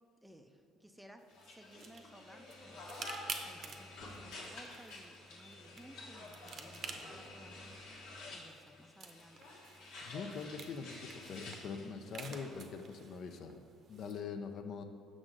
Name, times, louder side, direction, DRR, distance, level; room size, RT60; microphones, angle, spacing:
voice 1, 0.2-8.0 8.3-9.5, equal, ahead, 5 dB, 0.4 m, -58 dB
sound 1, 1.2-14.2, right 5 dB, 45° right, 0.7 m, -51 dB
sound 2, 1.3-12.7, left 2 dB, 80° left, 1.4 m, -50 dB
voice 2, 10.0-13.6 13.9-14.8, left 5 dB, 55° left, 7 dB, 0.5 m, -43 dB
6.2 x 6.2 x 3.8 m, 2.4 s
cardioid pair, 110°, 0 cm